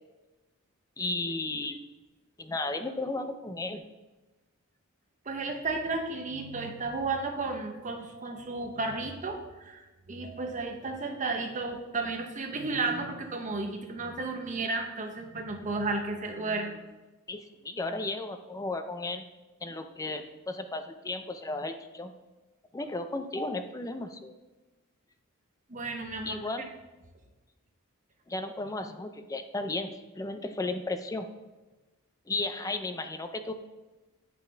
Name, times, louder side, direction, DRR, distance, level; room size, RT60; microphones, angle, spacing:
voice 1, 1.0-1.8 2.4-3.8 17.3-19.3 19.6-22.1 22.7-24.3 26.2-26.6 28.3-31.3 32.3-33.5, left 2 dB, 15° left, 8 dB, 0.4 m, -34 dB
voice 2, 5.3-16.8 25.7-26.7, right 3 dB, 35° right, 3 dB, 0.9 m, -33 dB
8.6 x 5.7 x 3.3 m, 1.2 s
head